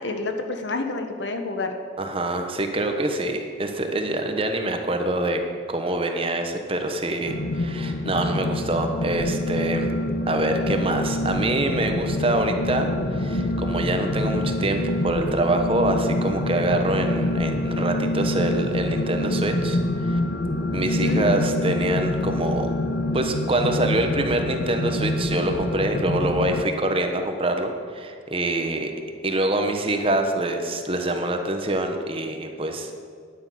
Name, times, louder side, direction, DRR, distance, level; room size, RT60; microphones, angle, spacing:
voice 1, 0.0-1.7 20.9-21.2, left 2 dB, 70° left, 6 dB, 1.4 m, -28 dB
voice 2, 2.0-5.4 5.7-9.9 10.2-20.2 20.7-22.7 23.1-28.9 29.2-33.0, right 1 dB, 30° right, 5 dB, 1.2 m, -25 dB
sound 1, 7.3-26.6, left 1 dB, 55° left, 0.8 m, -26 dB
10.0 x 9.8 x 9.4 m, 2.1 s
head